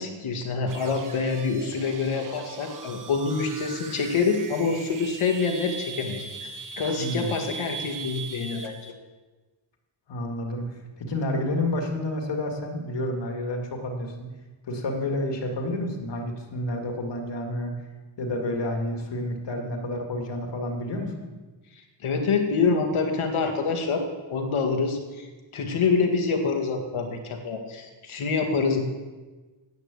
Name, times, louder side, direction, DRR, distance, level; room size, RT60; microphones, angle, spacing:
voice 1, 0.0-6.5 6.8-8.9 22.0-24.0 24.3-25.3 25.5-28.8, left 4 dB, 80° left, 4 dB, 2.1 m, -26 dB
sound 1, 0.6-8.9, right 4 dB, 40° right, 1.1 m, -40 dB
voice 2, 7.0-7.3 10.1-10.6 11.0-14.3 14.7-17.7 18.2-21.1, left 1 dB, 60° left, 2 dB, 2.2 m, -29 dB
10.5 x 8.3 x 8.2 m, 1.3 s
wide cardioid pair, 150°, 49 cm